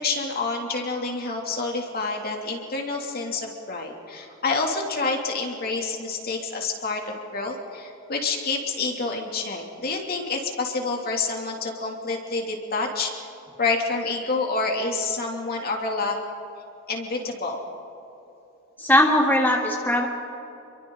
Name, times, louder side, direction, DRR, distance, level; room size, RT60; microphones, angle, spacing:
voice 1, 0.0-13.1 13.6-16.2 16.9-17.7, left 3 dB, 45° left, 1 dB, 2.9 m, -28 dB
voice 2, 18.8-20.1, left 1 dB, 10° left, -1 dB, 1.9 m, -19 dB
29.5 x 23.5 x 4.0 m, 2.9 s
head